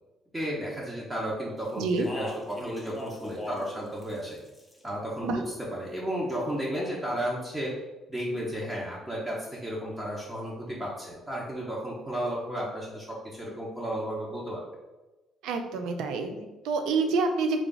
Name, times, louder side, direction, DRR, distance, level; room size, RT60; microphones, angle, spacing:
voice 1, 0.3-4.4 4.8-5.4 5.7-7.8 8.1-14.6, equal, 15° right, -4 dB, 0.8 m, -33 dB
Speech, 1.8-3.7 4.0-4.9 6.3-7.0, left 1 dB, 15° left, 0.6 m, -40 dB
voice 2, 1.8-2.1 5.2-5.4 15.4-17.6, right 3 dB, 80° right, 6 dB, 0.4 m, -28 dB
3.3 x 2.4 x 3.8 m, 1.1 s
supercardioid pair, 75°, 0 cm